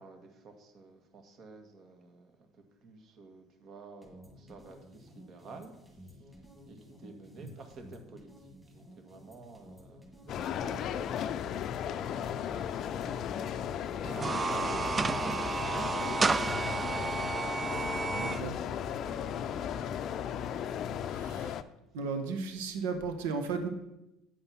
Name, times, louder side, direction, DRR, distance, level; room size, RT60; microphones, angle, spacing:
voice 1, 0.0-2.4 2.8-6.2 6.6-11.2 12.2-13.6 13.8-16.0 17.7-18.6 18.9-19.7, right 3 dB, 50° right, 4 dB, 1.8 m, -53 dB
sound 1, 4.0-16.9, equal, 10° right, 2.3 m, -54 dB
sound 2, 10.3-21.6, left 9 dB, 55° left, 0.5 m, -35 dB
sound 3, 14.0-18.4, right 4 dB, 25° right, 0.3 m, -31 dB
voice 2, 18.2-18.6 21.1-21.5 21.9-23.7, right 4 dB, 85° right, 6 dB, 1.1 m, -35 dB
8.8 x 5.4 x 5.7 m, 0.91 s
supercardioid pair, 85°, 0 cm